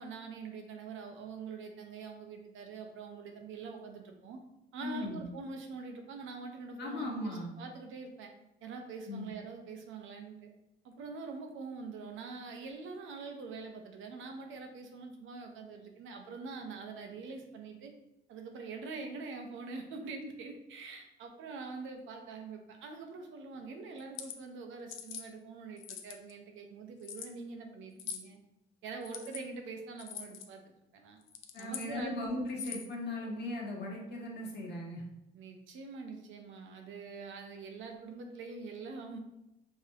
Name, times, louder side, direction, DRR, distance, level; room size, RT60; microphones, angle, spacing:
voice 1, 0.0-4.4 4.7-8.3 8.6-10.5 10.8-17.9 18.3-28.4 28.8-31.2 31.6-32.1 35.3-39.2, right 4 dB, 80° right, 3 dB, 0.7 m, -44 dB
voice 2, 4.8-5.2 6.8-7.5 9.1-9.3 31.5-35.0, left 1 dB, 55° left, -2 dB, 1.2 m, -38 dB
sound 1, 24.0-24.4 24.9-25.3 25.8-26.3 27.0-27.3 28.0-28.3 29.0-29.4 30.0-30.5 31.2-31.9 32.5-32.9, left 8 dB, 85° left, 0.4 m, -43 dB
5.0 x 2.7 x 2.7 m, 0.90 s
cardioid pair, 90°, 20 cm